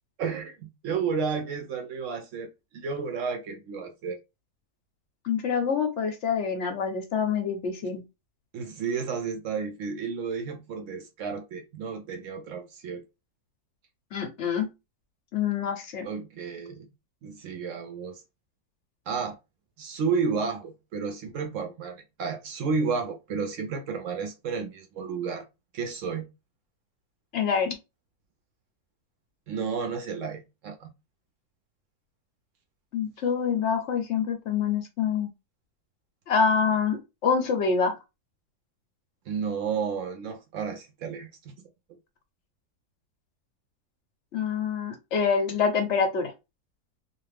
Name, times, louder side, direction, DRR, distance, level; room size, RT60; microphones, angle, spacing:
voice 1, 0.2-4.2 8.5-13.0 16.0-16.9 17.2-18.2 19.1-19.4 19.8-25.5 25.7-26.3 29.5-30.9 39.3-41.5, right 5 dB, 70° right, 0.7 m, -32 dB
voice 2, 5.2-8.0 14.1-14.7 15.3-16.1 27.3-27.8 32.9-35.3 36.3-37.9 44.3-46.3, left 6 dB, 60° left, 0.7 m, -26 dB
2.5 x 2.5 x 3.3 m
omnidirectional pair, 1.8 m